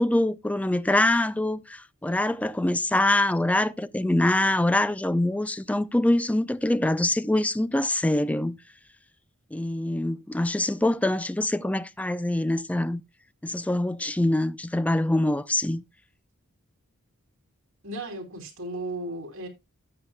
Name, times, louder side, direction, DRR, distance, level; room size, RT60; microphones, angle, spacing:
voice 1, 0.0-8.6 9.5-13.0 13.4-15.8, left 1 dB, 5° left, 0.4 m, -24 dB
voice 2, 17.8-19.5, right 1 dB, 65° right, 3.0 m, -35 dB
13.5 x 8.5 x 2.2 m
head